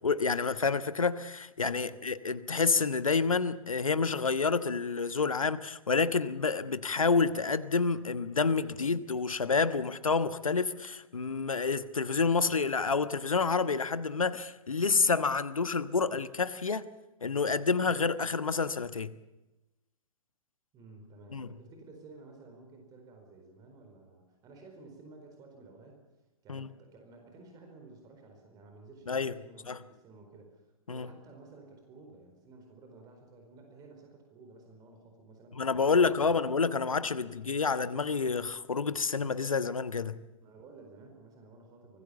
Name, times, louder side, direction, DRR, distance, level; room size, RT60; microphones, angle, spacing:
voice 1, 0.0-16.9 17.2-19.1 21.3-21.5 26.5-26.7 29.1-29.3 29.7-29.8 30.9-31.1 35.6-40.2, left 4 dB, 70° left, 1.3 m, -28 dB
voice 2, 20.7-26.0 26.4-35.7 36.0-36.6 37.2-37.3 40.4-42.0, right 3 dB, 20° right, 4.6 m, -53 dB
25.0 x 20.0 x 7.0 m
figure-of-eight pair, 120°, 18 cm